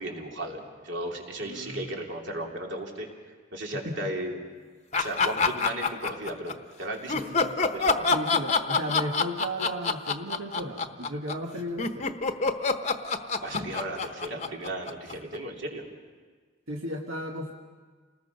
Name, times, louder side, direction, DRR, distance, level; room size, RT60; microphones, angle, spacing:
voice 1, 0.0-3.1 3.5-4.4 5.0-7.3 7.6-8.1 13.4-15.8, right 1 dB, 60° right, 0 dB, 2.9 m, -35 dB
voice 2, 1.4-2.0 3.8-4.1 7.1-7.5 8.1-12.1 16.7-17.5, equal, 90° right, 1 dB, 1.5 m, -35 dB
sound 1, 4.9-6.5 7.1-15.4, left 4 dB, 35° left, 0.9 m, -26 dB
29.0 x 20.0 x 5.4 m, 1.5 s
head